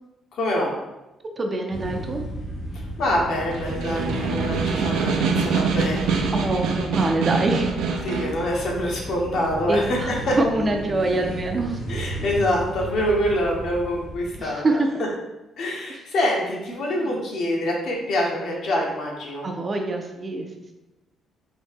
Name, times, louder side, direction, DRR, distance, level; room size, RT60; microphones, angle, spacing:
voice 1, 0.3-0.7 3.0-6.2 8.0-10.4 11.9-14.8 15.6-19.5, left 1 dB, 60° left, -2 dB, 1.0 m, -25 dB
voice 2, 1.4-2.2 4.1-4.2 4.5-4.7 6.3-7.7 9.7-11.8 14.4-14.9 17.0-17.2 19.4-20.5, right 2 dB, 25° right, 3 dB, 0.4 m, -25 dB
sound 1, 1.7-14.4, right 1 dB, 80° left, 1.2 m, -34 dB
Snare drum, 3.4-8.4, right 5 dB, 90° right, 0.5 m, -25 dB
4.0 x 2.7 x 3.5 m, 0.98 s
cardioid pair, 155°, 0 cm